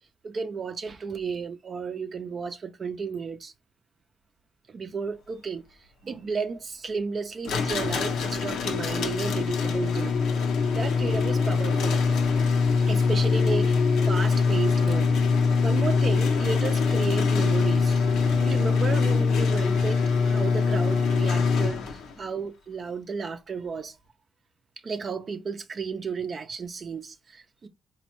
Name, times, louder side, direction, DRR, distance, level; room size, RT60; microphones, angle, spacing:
voice 1, 0.2-3.5 4.7-10.2 10.7-12.0 12.9-13.8 14.0-15.2 15.6-18.0 18.4-24.0 24.8-27.7, right 5 dB, 45° right, 0.4 m, -33 dB
sound 1, 7.4-22.1, left 5 dB, 80° left, 0.6 m, -23 dB
4.1 x 2.2 x 3.0 m
cardioid pair, 90°, 0 cm